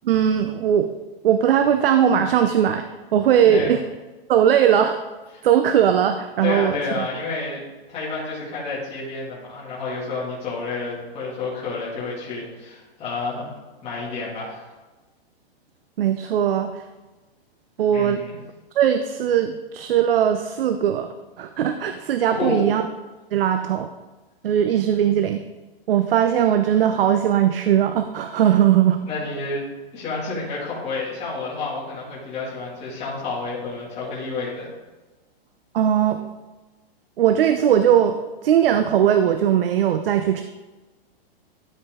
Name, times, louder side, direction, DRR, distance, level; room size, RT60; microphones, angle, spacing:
voice 1, 0.0-0.9 1.2-3.8 4.3-5.0 5.4-7.1 16.0-16.8 17.8-18.2 18.8-21.1 21.4-22.8 23.3-23.9 24.4-25.4 25.9-29.0 35.7-36.3 37.2-40.4, right 9 dB, 65° right, 8 dB, 0.6 m, -19 dB
voice 2, 6.4-7.6 7.9-13.5 13.8-14.7 17.9-18.3 22.3-22.6 29.0-29.6 29.9-34.7, left 3 dB, 20° left, -8 dB, 2.4 m, -30 dB
12.5 x 4.9 x 3.7 m, 1.2 s
hypercardioid pair, 155°, 31 cm